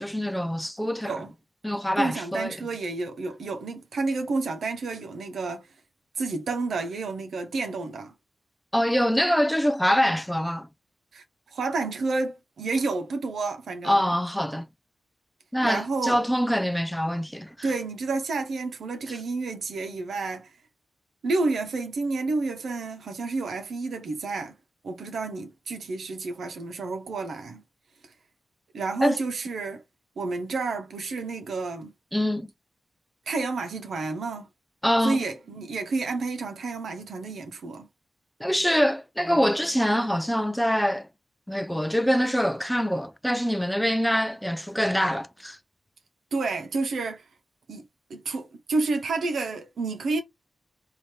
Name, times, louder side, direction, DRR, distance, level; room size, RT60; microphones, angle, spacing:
voice 1, 0.0-1.1 1.6-2.5 8.7-10.7 13.8-14.6 15.5-17.7 29.0-29.2 32.1-32.5 34.8-35.2 38.4-41.1 41.5-45.6, equal, 5° left, 0.5 m, -24 dB
voice 2, 2.0-5.7 6.2-8.1 11.1-14.0 15.6-16.2 17.6-20.5 21.2-24.6 24.8-27.6 28.7-29.8 30.2-31.9 33.3-34.5 35.0-37.9 46.3-47.2 47.7-50.2, right 3 dB, 85° right, 0.9 m, -30 dB
3.2 x 2.7 x 4.3 m
cardioid pair, 65°, 0 cm